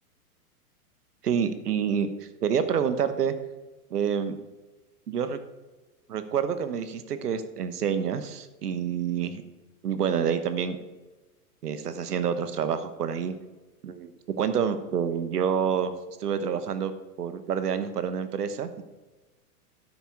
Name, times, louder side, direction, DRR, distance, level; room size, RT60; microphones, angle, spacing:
voice 1, 1.2-2.1 2.4-3.3 3.9-4.4 5.1-5.4 6.1-9.4 9.8-10.8 11.6-13.3 13.8-14.1 14.4-15.9 16.2-16.9 17.2-18.8, right 7 dB, 85° right, 11 dB, 1.1 m, -27 dB
10.0 x 7.0 x 4.7 m, 1.2 s
hypercardioid pair, 125°, 46 cm